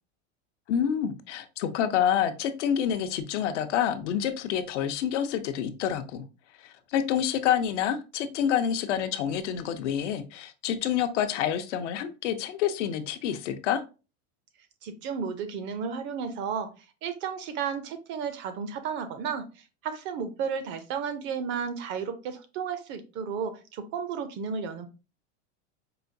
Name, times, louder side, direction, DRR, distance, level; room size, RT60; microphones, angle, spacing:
voice 1, 0.7-6.2 6.6-13.8, left 9 dB, 80° left, 8 dB, 0.7 m, -28 dB
voice 2, 14.8-16.7 17.0-24.9, right 6 dB, 35° right, 10 dB, 0.4 m, -33 dB
4.8 x 2.2 x 2.6 m, 0.31 s
supercardioid pair, 145°, 36 cm